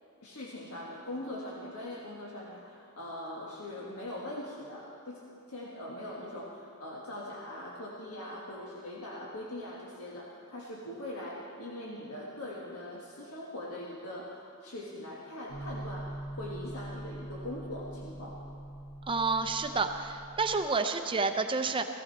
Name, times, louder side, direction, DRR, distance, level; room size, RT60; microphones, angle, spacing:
voice 1, 0.2-5.2 5.5-18.4, left 1 dB, 75° left, -4 dB, 1.5 m, -41 dB
sound 1, 15.5-20.6, right 1 dB, 40° left, 4.0 m, -43 dB
voice 2, 19.1-21.8, right 4 dB, 25° right, 7 dB, 0.5 m, -29 dB
16.0 x 14.5 x 4.1 m, 2.6 s
head